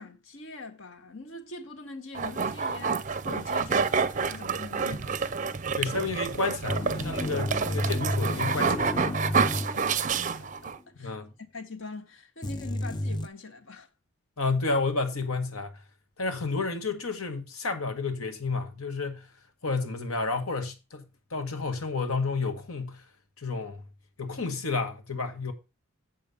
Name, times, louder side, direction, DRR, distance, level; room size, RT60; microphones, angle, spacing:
voice 1, 0.0-5.2 9.6-9.9 10.4-10.7 11.0-13.9, left 3 dB, 65° left, 1.6 m, -43 dB
sound 1, 2.1-10.8, right 5 dB, 35° right, 0.5 m, -28 dB
voice 2, 5.7-8.9 11.0-11.3 14.4-15.8 16.2-19.3 19.6-21.0 21.3-23.0 23.4-23.8 24.2-25.5, left 3 dB, 85° left, 1.8 m, -31 dB
sound 2, 6.7-10.4 10.7-10.8 12.4-13.3, left 1 dB, 20° left, 0.5 m, -32 dB
7.7 x 4.9 x 7.1 m
head